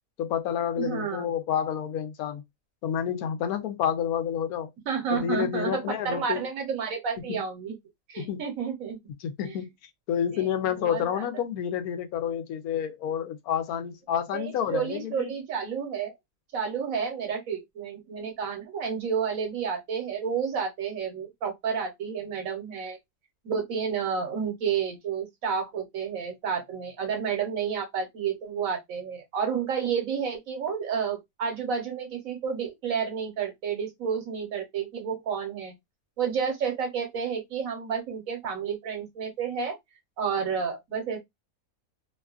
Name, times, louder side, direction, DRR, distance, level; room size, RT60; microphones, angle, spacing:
voice 1, 0.2-2.4 2.8-4.7 5.1-6.4 7.2-7.4 8.2-8.4 9.2-9.7 10.1-15.3, left 9 dB, 80° left, 1.0 m, -29 dB
voice 2, 0.8-1.2 4.9-7.8 8.1-9.0 9.4-9.5 10.3-11.2 14.3-16.1 16.5-23.0 23.4-35.7 36.2-39.8 40.2-41.2, right 6 dB, 65° right, 1.3 m, -30 dB
2.9 x 2.3 x 2.3 m
omnidirectional pair, 1.6 m